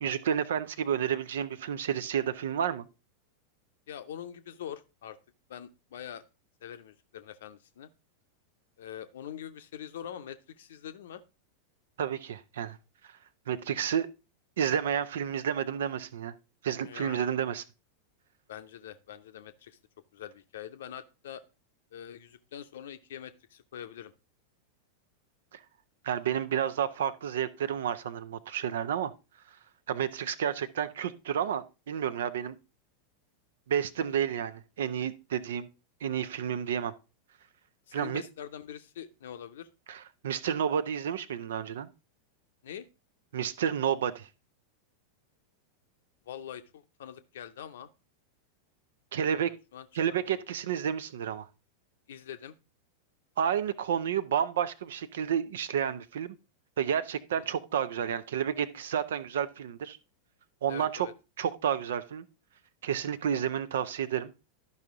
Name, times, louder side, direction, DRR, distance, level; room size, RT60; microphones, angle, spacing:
voice 1, 0.0-2.9 12.0-12.8 13.5-14.1 14.6-16.3 16.6-17.6 25.5-25.6 26.0-29.1 29.9-32.6 33.7-35.7 36.0-36.9 37.9-38.2 39.9-41.9 43.3-44.3 49.1-49.5 49.9-51.5 53.4-56.3 56.8-60.0 60.6-61.1 61.4-62.2 62.8-64.3, right 8 dB, 60° right, 0.6 m, -30 dB
voice 2, 3.9-5.2 5.5-6.2 6.6-7.9 8.8-11.2 16.8-17.3 18.5-19.8 20.1-21.4 21.9-24.1 37.9-39.7 42.6-42.9 46.3-47.9 49.2-50.3 52.1-52.5 57.4-57.5 60.7-61.1, left 9 dB, 60° left, 0.7 m, -44 dB
12.0 x 5.6 x 3.6 m
figure-of-eight pair, 90°, 0 cm